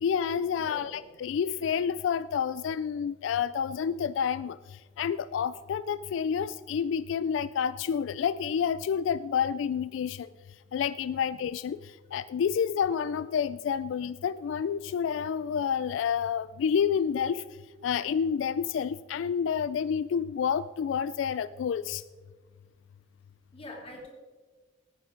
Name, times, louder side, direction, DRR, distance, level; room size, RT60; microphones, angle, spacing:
voice 1, 0.0-4.6 5.0-10.3 10.7-17.4 17.8-22.0, left 7 dB, 85° left, 16 dB, 0.3 m, -29 dB
voice 2, 0.6-1.0 23.5-24.1, left 1 dB, 30° left, -2 dB, 2.7 m, -44 dB
18.0 x 9.5 x 3.8 m, 1.4 s
head